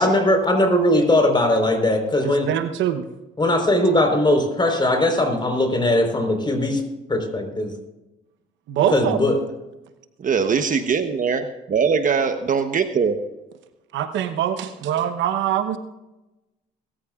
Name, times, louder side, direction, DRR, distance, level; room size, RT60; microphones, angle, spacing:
voice 1, 0.0-2.5 3.4-6.8 7.1-7.7 8.9-9.4, left 1 dB, 25° left, 4 dB, 4.2 m, -19 dB
voice 2, 2.2-3.1 8.7-9.2 13.9-15.8, right 10 dB, 70° right, 9 dB, 1.0 m, -23 dB
voice 3, 10.2-13.2, right 6 dB, 40° right, 8 dB, 1.0 m, -21 dB
21.5 x 14.0 x 2.5 m, 1.0 s
supercardioid pair, 75°, 20 cm